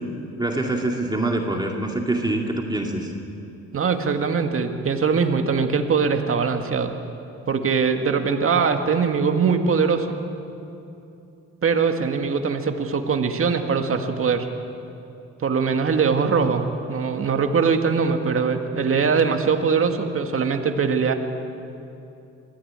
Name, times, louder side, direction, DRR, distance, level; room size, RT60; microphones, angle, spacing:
voice 1, 0.4-3.1, right 2 dB, 15° right, 1 dB, 2.4 m, -25 dB
voice 2, 3.7-6.9 7.5-10.2 11.6-14.5 15.4-21.2, right 5 dB, 45° right, 5 dB, 1.9 m, -22 dB
22.5 x 15.5 x 8.9 m, 2.8 s
cardioid pair, 90°, 30 cm